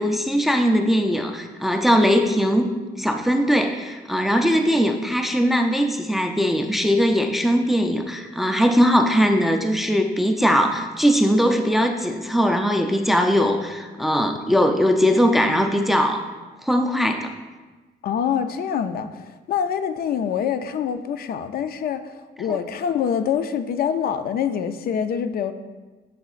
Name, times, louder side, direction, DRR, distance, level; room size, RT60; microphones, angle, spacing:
voice 1, 0.0-16.3 16.6-17.3, equal, ahead, 5 dB, 0.4 m, -20 dB
voice 2, 18.0-25.5, left 8 dB, 60° left, 10 dB, 0.4 m, -25 dB
10.0 x 6.8 x 2.4 m, 1.3 s
cardioid pair, 155°, 18 cm